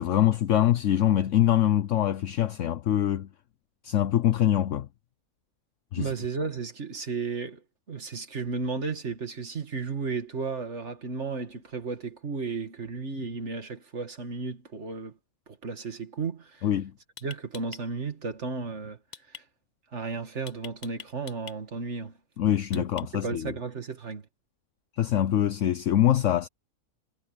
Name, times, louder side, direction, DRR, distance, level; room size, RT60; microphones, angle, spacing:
voice 1, 0.0-3.3 3.8-4.9 5.9-6.1 16.6-16.9 22.4-23.5 25.0-26.5, left 11 dB, 65° left, 1.0 m, -24 dB
voice 2, 6.0-7.6 7.9-15.2 15.5-16.7 17.2-19.0 19.3-19.4 19.9-22.2 22.7-22.9 23.1-24.3, right 4 dB, 55° right, 2.5 m, -34 dB
sound 1, 16.5-16.7 17.2-17.8 19.1-19.4 20.5-21.6 22.7-23.3, left 7 dB, 45° left, 0.6 m, -44 dB
omnidirectional pair, 1.4 m